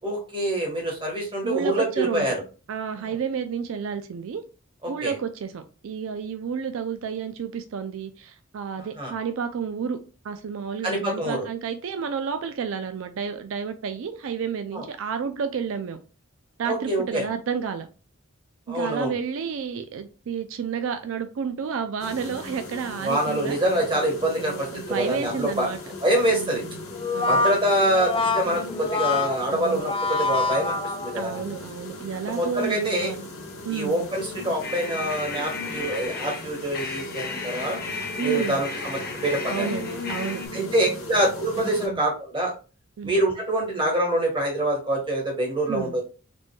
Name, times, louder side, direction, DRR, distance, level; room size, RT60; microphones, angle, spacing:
voice 1, 0.0-2.4 3.0-3.1 4.8-5.1 8.8-9.1 10.8-11.5 14.7-14.8 16.6-17.3 18.7-19.1 23.0-25.7 26.0-26.6 27.3-31.5 32.3-33.1 33.7-37.8 38.2-39.7 40.5-42.5 43.0-46.0, right 1 dB, 25° right, 1.4 m, -25 dB
voice 2, 1.4-2.3 2.7-4.4 4.9-10.0 10.2-16.0 16.6-17.9 18.7-23.6 24.4-25.8 26.3-26.7 27.1-27.4 29.5-29.8 31.1-33.3 33.6-34.1 38.2-38.7 39.5-40.7 41.9-42.0 43.0-43.1 45.7-45.9, right 6 dB, 75° right, 0.4 m, -31 dB
sound 1, 22.0-41.9, left 2 dB, 85° left, 1.1 m, -38 dB
Brass instrument, 26.9-31.4, left 3 dB, 25° left, 0.4 m, -26 dB
sound 2, 34.6-40.5, left 4 dB, 45° left, 0.8 m, -34 dB
4.2 x 3.1 x 2.2 m
head